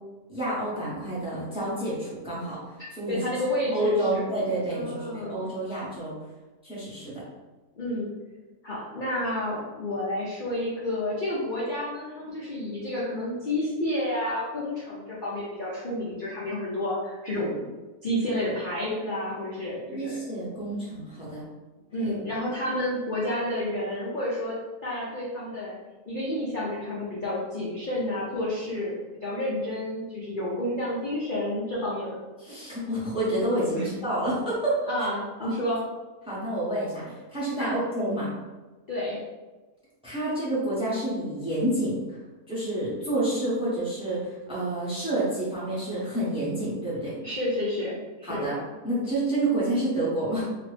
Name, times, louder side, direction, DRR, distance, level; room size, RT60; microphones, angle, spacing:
voice 1, 0.3-2.6 2.9-3.2 3.7-6.1 6.6-7.2 19.9-21.4 22.0-22.3 32.4-34.9 35.4-35.6 36.3-38.3 40.0-42.2 42.5-47.2 48.2-48.6 48.8-50.4, right 1 dB, 5° right, -8 dB, 0.7 m, -29 dB
voice 2, 3.1-4.2 4.7-5.4 7.8-8.1 8.6-17.7 18.0-20.2 21.9-24.6 24.8-25.8 26.1-29.0 29.2-32.2 33.7-33.9 34.9-35.8 37.6-37.8 38.9-39.2 47.2-48.4, left 1 dB, 55° left, -7 dB, 0.5 m, -30 dB
2.9 x 2.5 x 3.2 m, 1.2 s
omnidirectional pair, 1.7 m